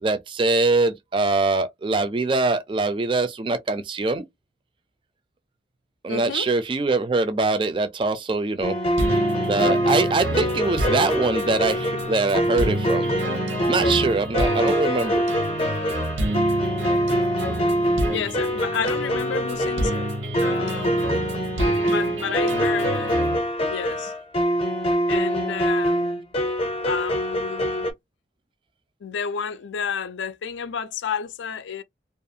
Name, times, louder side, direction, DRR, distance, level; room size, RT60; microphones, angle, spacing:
voice 1, 0.0-4.2 6.0-8.7 9.5-13.1 13.7-15.2, right 3 dB, 25° right, 0.3 m, -23 dB
voice 2, 6.1-6.5 18.1-20.1 20.4-21.2 21.9-23.1 23.7-24.1 25.1-26.1 26.8-27.9 29.0-31.8, left 6 dB, 80° left, 0.4 m, -31 dB
sound 1, 8.6-27.9, equal, 30° left, 0.5 m, -24 dB
sound 2, 9.0-23.4, right 1 dB, 90° right, 0.8 m, -29 dB
2.4 x 2.3 x 2.7 m
head